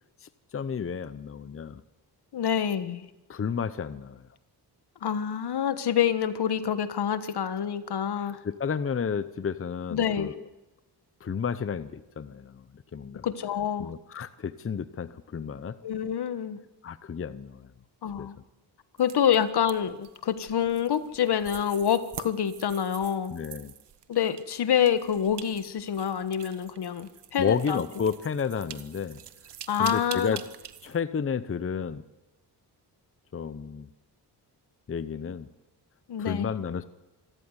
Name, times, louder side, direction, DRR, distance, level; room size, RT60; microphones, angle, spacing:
voice 1, 0.2-1.8 3.3-4.2 8.1-10.4 11.2-12.6 12.9-13.3 13.8-15.8 16.8-17.7 18.2-18.3 23.3-23.7 27.4-29.2 29.8-30.4 30.8-32.0 33.3-33.9 34.9-35.5 36.2-36.8, left 6 dB, 30° left, 14 dB, 0.8 m, -32 dB
voice 2, 2.3-3.0 5.0-8.4 9.9-10.3 13.2-13.9 15.8-16.6 18.0-18.4 19.0-23.3 24.1-27.8 29.7-30.4 36.1-36.5, left 8 dB, 70° left, 13 dB, 1.5 m, -27 dB
sound 1, 19.0-31.0, right 10 dB, 75° right, 1.4 m, -46 dB
26.0 x 14.5 x 9.8 m, 1.0 s
wide cardioid pair, 110°, 41 cm